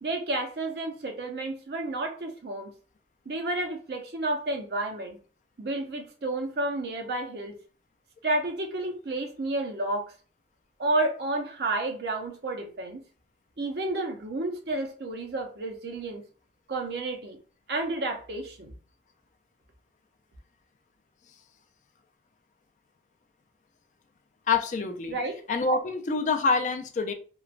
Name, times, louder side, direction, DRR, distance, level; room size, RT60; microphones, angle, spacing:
voice 1, 0.0-2.7 3.3-5.2 5.6-7.6 8.2-10.1 10.8-13.0 13.6-16.2 16.7-17.4 17.7-18.7 25.1-25.3, right 2 dB, 65° right, 0.6 m, -31 dB
voice 2, 24.5-25.2 25.5-27.1, left 4 dB, 45° left, 0.3 m, -26 dB
3.0 x 2.2 x 2.4 m
head